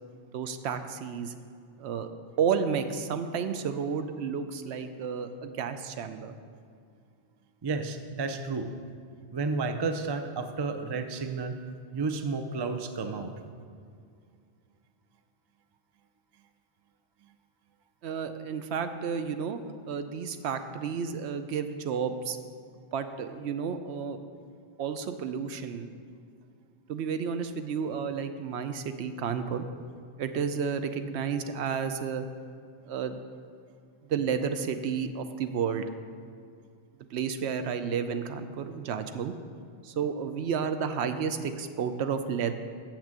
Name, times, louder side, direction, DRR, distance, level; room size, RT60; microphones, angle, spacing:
voice 1, 0.3-1.3 1.8-2.1 2.4-6.4 18.0-19.6 19.9-22.4 22.9-24.2 24.8-25.9 26.9-29.6 30.2-32.2 32.9-33.2 34.1-35.9 37.1-39.3 39.8-42.5, right 6 dB, 75° right, 9 dB, 0.8 m, -31 dB
voice 2, 7.6-8.7 9.3-11.6 11.9-13.3, right 4 dB, 40° right, 7 dB, 0.3 m, -31 dB
6.6 x 6.1 x 7.5 m, 2.3 s
omnidirectional pair, 1.2 m